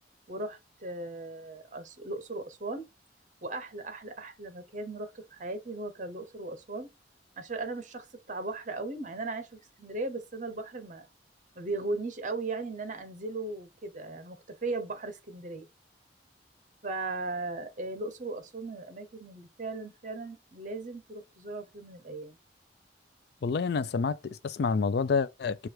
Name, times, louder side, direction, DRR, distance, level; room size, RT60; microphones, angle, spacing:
voice 1, 0.3-2.9 3.4-6.9 7.4-11.1 11.5-15.7 16.8-22.4, right 2 dB, 45° right, 0.9 m, -37 dB
voice 2, 23.4-25.6, left 5 dB, 60° left, 0.4 m, -28 dB
4.7 x 2.4 x 4.5 m
head